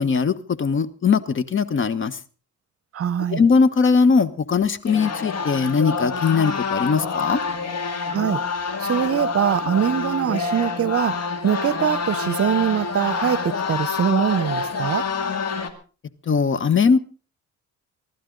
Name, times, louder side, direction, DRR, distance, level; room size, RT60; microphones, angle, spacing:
voice 1, 0.0-2.2 3.3-7.4 16.3-17.0, left 5 dB, 40° left, 1.0 m, -20 dB
voice 2, 2.9-3.4 8.1-8.4 8.8-15.1, right 9 dB, 50° right, 0.9 m, -23 dB
sound 1, 4.9-15.7, left 5 dB, 55° left, 2.2 m, -27 dB
24.0 x 12.0 x 3.9 m
cardioid pair, 90°, 30 cm